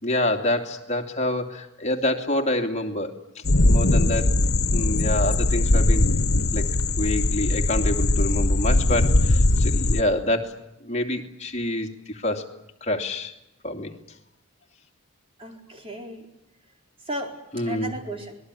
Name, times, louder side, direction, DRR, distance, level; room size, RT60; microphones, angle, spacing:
voice 1, 0.0-3.1 3.6-4.3 4.7-6.1 6.5-6.7 7.0-10.5 10.8-11.9 12.1-12.4 12.8-13.3 13.6-13.9 17.5-18.0, left 1 dB, 30° left, 3 dB, 2.9 m, -26 dB
sound 1, 3.4-10.0, left 2 dB, 80° left, 1.4 m, -20 dB
voice 2, 15.4-16.3 17.1-18.3, equal, 25° right, 2 dB, 4.4 m, -35 dB
27.5 x 21.0 x 9.9 m, 0.86 s
head